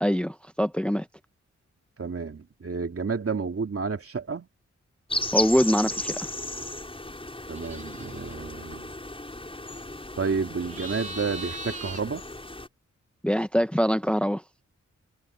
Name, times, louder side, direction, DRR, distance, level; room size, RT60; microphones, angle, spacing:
voice 1, 0.0-1.1 5.3-6.3 13.2-14.4, equal, 5° left, 0.9 m, -24 dB
voice 2, 2.0-4.5 7.5-8.9 10.2-12.2, right 5 dB, 50° right, 2.6 m, -30 dB
sound 1, 5.1-12.7, left 1 dB, 20° left, 5.6 m, -35 dB
sound 2, 7.5-8.3 10.6-12.0, right 2 dB, 25° right, 2.0 m, -39 dB
wide cardioid pair, 75°, 29 cm